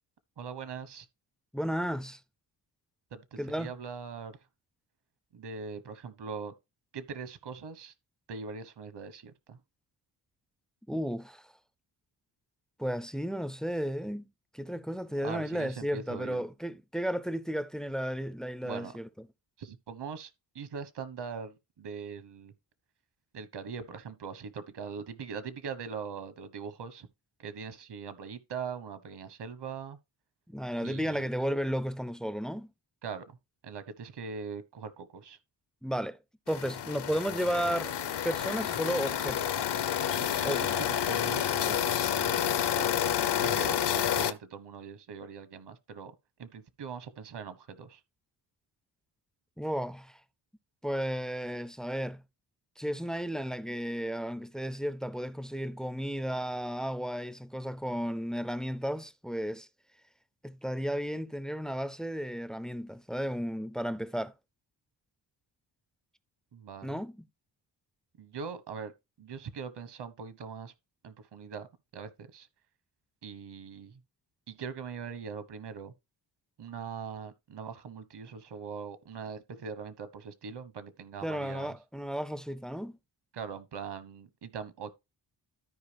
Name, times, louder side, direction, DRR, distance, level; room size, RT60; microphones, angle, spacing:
voice 1, 0.4-1.1 3.1-4.4 5.3-6.5 6.9-7.9 8.3-9.6 15.2-16.4 18.6-18.9 19.6-22.5 23.3-27.1 27.4-30.0 30.8-31.3 33.0-33.4 33.6-35.4 40.0-46.1 46.4-48.0 66.5-67.0 68.2-68.9 69.2-70.7 71.0-71.7 71.9-72.5 73.2-74.0 74.5-75.9 76.6-81.7 83.3-84.9, right 6 dB, 65° right, 1.2 m, -41 dB
voice 2, 1.5-2.2 3.4-3.7 10.9-11.4 12.8-14.3 14.5-19.1 30.5-32.7 35.8-36.2 36.5-37.9 38.2-39.7 40.4-40.8 49.6-50.2 50.8-52.2 52.8-59.7 60.4-64.3 66.8-67.2 81.2-83.0, equal, ahead, 0.4 m, -33 dB
sound 1, 36.5-44.3, left 10 dB, 65° left, 0.8 m, -29 dB
13.5 x 4.8 x 3.4 m
wide cardioid pair, 115°, 44 cm